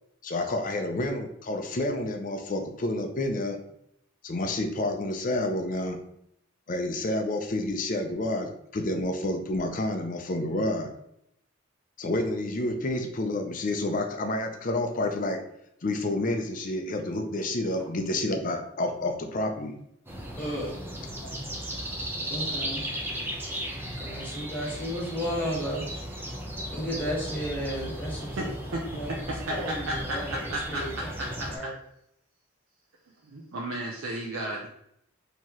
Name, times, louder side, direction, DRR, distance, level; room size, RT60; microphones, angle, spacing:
voice 1, 0.2-3.6 4.2-6.0 6.7-10.9 12.0-15.4 15.8-19.8, left 1 dB, 40° left, 4 dB, 0.5 m, -29 dB
sound 1, 20.1-31.6, equal, 10° right, 0.6 m, -36 dB
voice 2, 20.4-20.8 22.3-22.9 24.0-25.8 26.7-28.5 28.9-29.1 29.5-30.9 31.2-31.7, equal, 10° left, -7 dB, 1.4 m, -33 dB
voice 3, 29.1-30.2 30.5-31.7 33.2-34.7, right 1 dB, 75° right, -1 dB, 0.5 m, -33 dB
4.5 x 2.9 x 2.9 m, 0.75 s
head